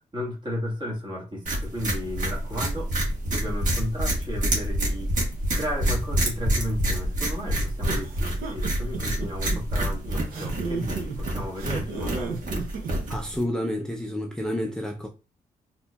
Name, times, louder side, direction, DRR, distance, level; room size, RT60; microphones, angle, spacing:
voice 1, 0.0-5.1 5.5-12.4, equal, 30° right, 1.5 m, -34 dB
sound 1, 1.5-13.4, right 1 dB, 60° right, 1.4 m, -27 dB
sound 2, 7.9-13.2, right 4 dB, 85° right, 0.8 m, -33 dB
voice 2, 13.1-15.1, equal, 5° left, 0.5 m, -29 dB
4.1 x 2.8 x 2.3 m
cardioid pair, 75°, 15 cm